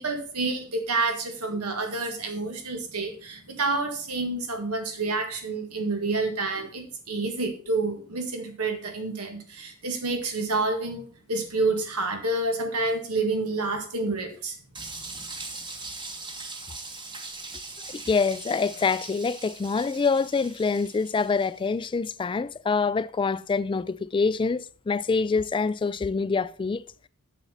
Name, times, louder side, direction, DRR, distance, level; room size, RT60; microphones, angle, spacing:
voice 1, 0.0-14.6, right 3 dB, 85° right, 1.8 m, -28 dB
sound 1, 14.7-21.6, right 3 dB, 20° right, 1.1 m, -40 dB
voice 2, 17.9-26.8, left 4 dB, 20° left, 0.3 m, -26 dB
7.1 x 7.0 x 5.6 m
head